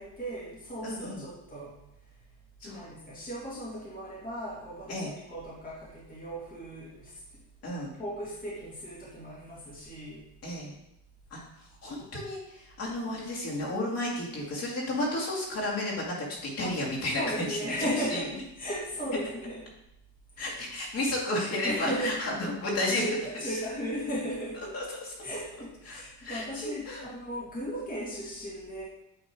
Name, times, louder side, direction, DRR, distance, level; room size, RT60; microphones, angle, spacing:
voice 1, 0.0-1.7 2.6-7.4 7.7-10.3 12.9-13.2 16.6-16.7 17.1-19.6 20.4-20.5 21.6-22.5 22.9-24.6 25.2-28.8, equal, 25° left, -7 dB, 2.1 m, -36 dB
voice 2, 0.8-1.2 2.6-2.9 4.9-5.1 7.6-7.9 10.4-10.7 11.3-11.4 11.8-16.2 16.4-17.6 18.1-18.2 20.4-23.0 24.7-25.2 25.9-27.0, left 1 dB, 40° left, -5 dB, 2.3 m, -32 dB
9.1 x 3.6 x 4.6 m, 0.86 s
cardioid pair, 150°, 37 cm